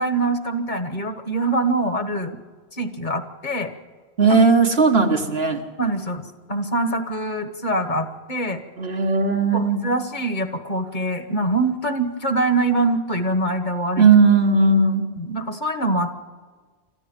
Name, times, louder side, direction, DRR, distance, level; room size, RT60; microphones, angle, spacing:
voice 1, 0.0-2.4 2.7-3.7 5.8-8.6 9.5-14.1 15.2-16.2, right 2 dB, 50° left, 8 dB, 1.6 m, -24 dB
voice 2, 4.2-5.6 8.8-9.8 14.0-15.0, right 4 dB, 80° right, 3 dB, 2.0 m, -17 dB
25.5 x 14.5 x 7.3 m, 1.5 s
omnidirectional pair, 1.0 m